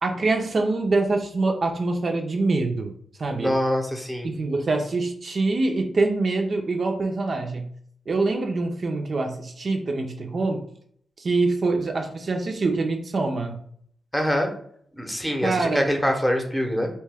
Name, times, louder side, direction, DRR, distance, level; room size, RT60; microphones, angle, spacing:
voice 1, 0.0-2.9 3.2-3.6 4.2-7.7 8.1-10.7 11.2-13.6 15.4-15.9, right 3 dB, 55° right, 3 dB, 0.4 m, -24 dB
voice 2, 3.4-4.3 14.1-14.5 14.9-16.9, equal, 5° left, 3 dB, 0.7 m, -24 dB
2.9 x 2.2 x 3.3 m, 0.63 s
cardioid pair, 55°, 0 cm